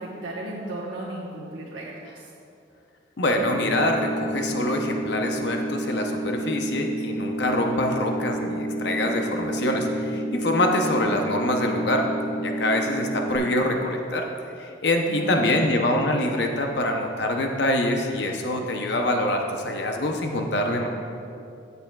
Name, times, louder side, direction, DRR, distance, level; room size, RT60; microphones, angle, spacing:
voice 1, 0.0-2.3 15.1-15.7, right 1 dB, 85° right, -5 dB, 1.1 m, -35 dB
voice 2, 3.2-12.1 12.4-14.3 14.6-20.9, left 1 dB, 60° left, 3 dB, 0.7 m, -25 dB
sound 1, 3.4-13.4, right 1 dB, 45° right, 1.3 m, -30 dB
16.0 x 6.9 x 2.3 m, 2.6 s
head